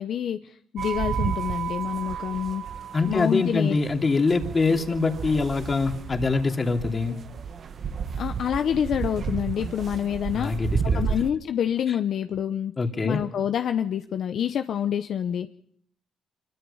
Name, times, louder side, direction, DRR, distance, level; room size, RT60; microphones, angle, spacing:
voice 1, 0.0-2.6 3.0-3.8 8.2-10.7 10.9-12.7 13.0-15.5, left 9 dB, 65° left, 8 dB, 0.9 m, -27 dB
sound 1, 0.8-11.3, right 7 dB, 55° right, 1.3 m, -32 dB
voice 2, 2.9-7.2 10.3-11.0 12.8-13.2, left 3 dB, 30° left, 4 dB, 2.8 m, -24 dB
24.5 x 23.0 x 5.6 m, 0.65 s
cardioid pair, 90°, 0 cm